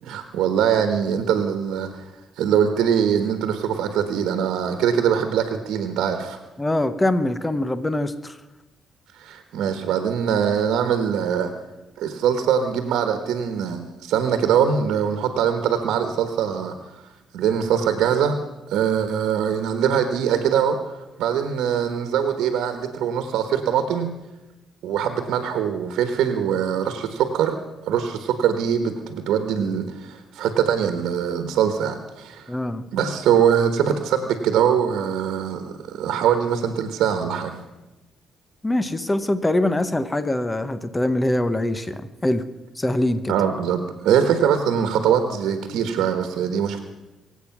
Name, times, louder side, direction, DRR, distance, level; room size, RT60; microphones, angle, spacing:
voice 1, 0.0-2.1 2.4-6.4 9.1-11.5 12.0-16.7 17.3-18.4 18.7-24.1 24.8-32.6 32.9-37.6 43.3-46.8, right 8 dB, 85° right, 7 dB, 1.2 m, -22 dB
voice 2, 6.6-8.4 32.5-32.8 38.6-42.5 42.8-43.3, left 1 dB, 15° left, 12 dB, 0.9 m, -23 dB
23.5 x 8.2 x 6.0 m, 1.1 s
cardioid pair, 90°, 0 cm